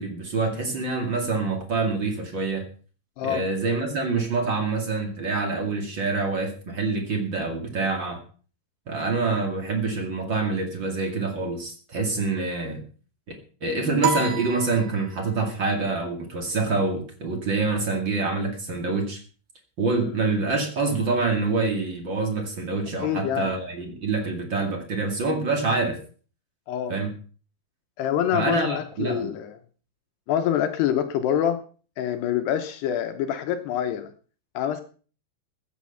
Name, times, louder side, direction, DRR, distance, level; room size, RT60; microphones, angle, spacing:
voice 1, 0.0-2.6 3.2-8.2 8.9-12.8 13.6-19.2 19.8-26.0 26.9-27.1 28.3-29.3, right 3 dB, 35° right, 4 dB, 2.0 m, -26 dB
sound 1, 14.0-15.5, right 6 dB, 70° right, 3.6 m, -29 dB
voice 2, 23.0-23.5 26.7-26.9 28.0-29.6 30.3-31.6 32.0-34.1 34.5-34.8, left 10 dB, 75° left, 7 dB, 2.8 m, -26 dB
15.0 x 9.5 x 5.7 m, 0.40 s
omnidirectional pair, 5.3 m